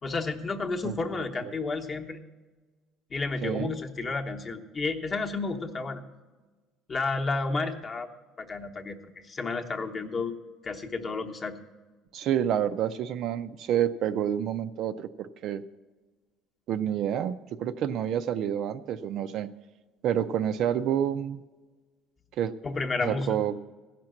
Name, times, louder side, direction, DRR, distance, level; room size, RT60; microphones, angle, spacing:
voice 1, 0.0-2.2 3.1-6.0 6.9-8.1 8.4-10.3 10.6-11.6 22.6-23.4, left 3 dB, 20° left, 3 dB, 0.9 m, -31 dB
voice 2, 0.8-1.2 3.4-3.7 12.1-15.6 16.7-19.5 20.0-21.4 22.4-22.5 23.0-23.6, right 10 dB, 45° right, 10 dB, 0.4 m, -28 dB
16.0 x 5.9 x 7.7 m, 1.3 s
cardioid pair, 175°, 0 cm